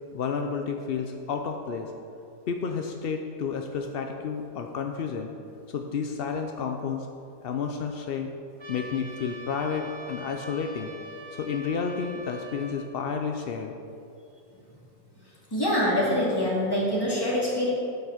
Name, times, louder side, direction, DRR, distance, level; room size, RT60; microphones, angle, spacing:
voice 1, 0.1-1.9 2.5-5.3 5.7-7.1 7.4-8.3 8.7-10.9 11.3-13.7, left 6 dB, 70° left, 4 dB, 0.5 m, -31 dB
Trumpet, 8.6-12.8, right 1 dB, 20° right, 1.1 m, -43 dB
voice 2, 15.5-17.7, left 1 dB, 15° left, -6 dB, 2.3 m, -25 dB
9.0 x 5.8 x 6.5 m, 2.5 s
omnidirectional pair, 1.7 m